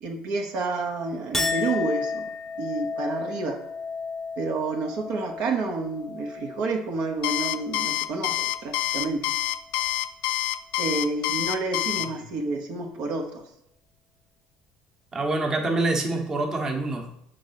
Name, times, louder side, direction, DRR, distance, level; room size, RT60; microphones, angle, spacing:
voice 1, 0.0-2.2 2.6-3.6 4.4-9.2 10.8-13.4, right 3 dB, 60° right, 3 dB, 1.1 m, -29 dB
Chink clink, 1.3-7.9 8.3-8.9, left 4 dB, 10° left, 0.6 m, -33 dB
Alarm, 7.2-12.1, left 15 dB, 75° left, 0.4 m, -26 dB
voice 2, 15.1-17.1, right 2 dB, 25° right, 2 dB, 1.2 m, -26 dB
6.9 x 3.9 x 5.8 m, 0.79 s
cardioid pair, 130°, 2 cm